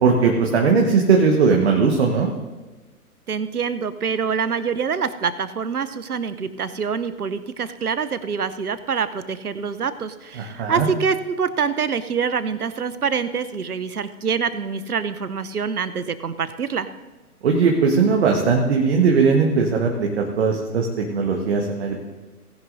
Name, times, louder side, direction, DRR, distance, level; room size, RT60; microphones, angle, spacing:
voice 1, 0.0-2.3 10.4-10.9 17.4-22.0, right 5 dB, 45° right, 1 dB, 1.4 m, -19 dB
voice 2, 3.3-16.9, right 6 dB, 75° right, 13 dB, 0.9 m, -25 dB
18.0 x 11.0 x 2.7 m, 1.2 s
figure-of-eight pair, 125°, 46 cm